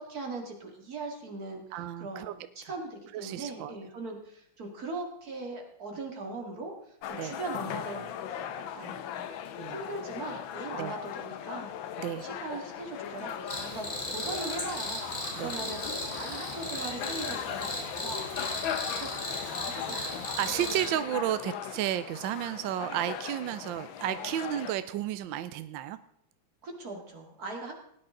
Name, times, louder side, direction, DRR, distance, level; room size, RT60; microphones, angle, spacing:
voice 1, 0.0-8.5 8.7-9.3 9.7-11.7 12.2-15.0 15.4-20.4 23.6-23.7 26.6-27.8, right 3 dB, 45° right, 1 dB, 2.7 m, -40 dB
voice 2, 1.7-2.3 2.6-2.7 3.1-3.7 7.2-7.3 9.6-9.8 10.8-10.9 12.0-12.2 15.3-15.5 19.9-26.0, right 12 dB, 75° right, 12 dB, 1.2 m, -33 dB
sound 1, 7.0-24.7, left 10 dB, 80° left, 1.6 m, -38 dB
Cricket, 13.5-20.9, left 1 dB, 25° left, 2.6 m, -36 dB
18.0 x 9.9 x 3.8 m, 0.73 s
omnidirectional pair, 2.2 m